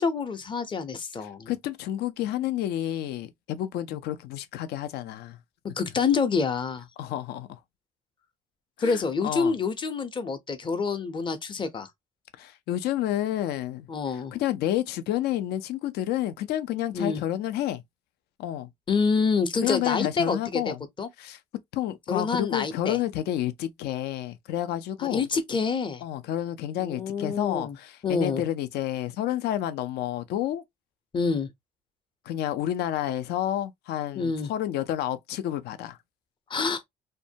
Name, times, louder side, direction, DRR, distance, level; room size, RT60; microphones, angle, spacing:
voice 1, 0.0-1.5 5.8-6.9 8.8-11.9 13.9-14.3 16.9-17.2 18.9-21.1 22.1-23.0 25.0-26.0 26.8-27.8 28.0-28.4 31.1-31.5 34.2-34.5 36.5-36.8, left 5 dB, 30° left, 0.6 m, -27 dB
voice 2, 1.2-5.4 7.0-7.6 8.8-9.6 12.4-13.9 14.3-17.8 18.4-18.7 19.6-20.8 21.2-21.4 21.7-25.2 26.0-30.6 32.3-36.0, left 12 dB, 75° left, 0.4 m, -30 dB
2.6 x 2.2 x 2.6 m
cardioid pair, 110°, 17 cm